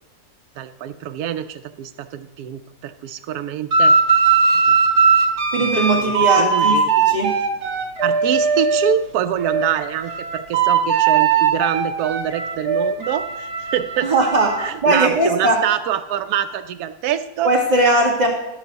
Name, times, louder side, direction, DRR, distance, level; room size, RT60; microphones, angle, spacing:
voice 1, 0.6-3.9 4.7-4.8 5.6-6.9 8.0-14.1 14.6-17.5, right 10 dB, 85° right, 9 dB, 1.1 m, -25 dB
sound 1, 3.7-9.0 9.4-14.7, right 5 dB, 50° right, 1.4 m, -19 dB
voice 2, 5.5-6.8 7.1-7.3 14.0-14.5 14.8-15.6 17.4-18.3, right 2 dB, 30° right, -4 dB, 2.4 m, -18 dB
12.5 x 4.8 x 6.8 m, 0.96 s
omnidirectional pair, 1.6 m